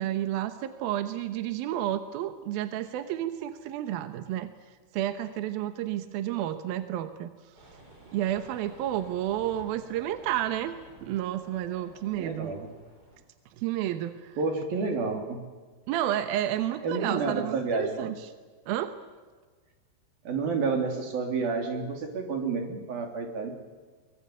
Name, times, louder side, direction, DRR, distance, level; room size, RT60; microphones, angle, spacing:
voice 1, 0.0-4.5 4.9-7.3 8.1-10.7 11.0-12.5 13.6-14.4 15.9-18.1 18.7-19.0, right 12 dB, 75° right, 10 dB, 2.3 m, -31 dB
sound 1, 7.6-13.2, right 1 dB, 20° right, 5.5 m, -52 dB
voice 2, 12.2-12.7 14.4-15.4 16.8-18.0 20.2-23.5, right 4 dB, 55° right, 4 dB, 4.7 m, -30 dB
24.0 x 21.5 x 8.6 m, 1.4 s
omnidirectional pair, 5.3 m